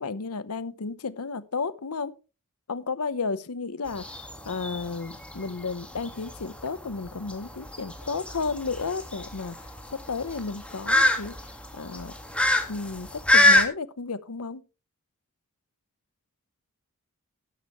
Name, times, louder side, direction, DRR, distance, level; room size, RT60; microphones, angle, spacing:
voice 1, 0.0-2.1 2.7-11.3 11.7-12.1 12.7-14.6, left 4 dB, 90° left, 0.9 m, -33 dB
sound 1, 3.9-13.6, left 2 dB, 5° left, 1.7 m, -25 dB
12.5 x 11.0 x 3.1 m
head